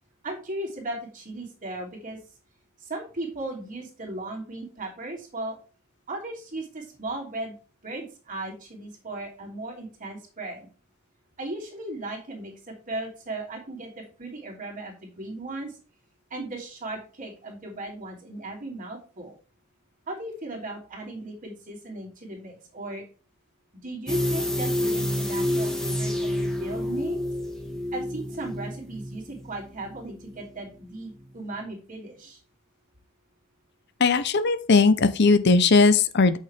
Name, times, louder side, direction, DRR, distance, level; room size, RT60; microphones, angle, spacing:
voice 1, 0.2-2.2 2.8-5.6 6.1-7.6 7.8-10.7 11.4-15.8 16.3-19.4 20.1-23.0 23.8-27.2 27.9-32.4, right 2 dB, 40° right, -1 dB, 3.0 m, -36 dB
sound 1, 24.1-30.9 31.2-31.3, left 1 dB, 5° left, 1.9 m, -29 dB
voice 2, 34.0-36.4, left 4 dB, 55° left, 13 dB, 0.6 m, -18 dB
8.6 x 6.6 x 3.4 m, 0.37 s
head